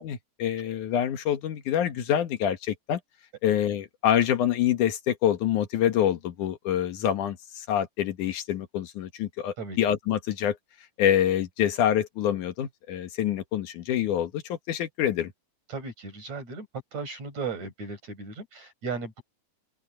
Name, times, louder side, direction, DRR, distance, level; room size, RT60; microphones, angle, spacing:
voice 1, 0.0-3.0 3.4-10.6 11.0-15.3, left 10 dB, 80° left, 3.0 m, -26 dB
voice 2, 15.7-16.7 16.9-19.2, right 4 dB, 65° right, 8.0 m, -36 dB
open air
omnidirectional pair, 3.5 m